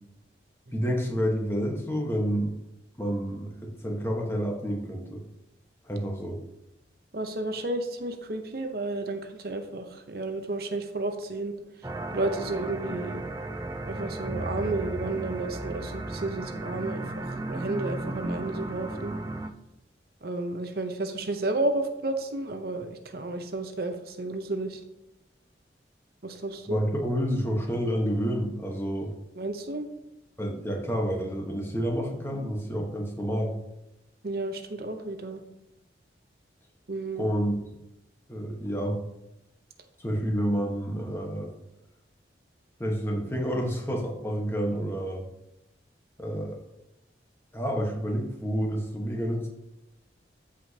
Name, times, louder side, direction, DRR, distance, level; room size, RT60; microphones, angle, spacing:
voice 1, 0.7-2.5 3.0-5.2 5.8-6.4 26.7-29.1 30.4-33.5 37.2-37.7 38.3-39.0 40.0-41.5 42.8-45.3 46.2-46.6 47.5-49.5, equal, 15° left, 0 dB, 1.2 m, -29 dB
voice 2, 7.1-13.3 13.9-19.1 20.2-24.8 26.2-26.8 29.4-29.9 34.2-35.4 36.9-37.3, right 2 dB, 55° right, 6 dB, 0.7 m, -32 dB
sound 1, 11.8-19.5, right 2 dB, 20° right, 0.4 m, -34 dB
14.5 x 5.0 x 2.8 m, 0.87 s
head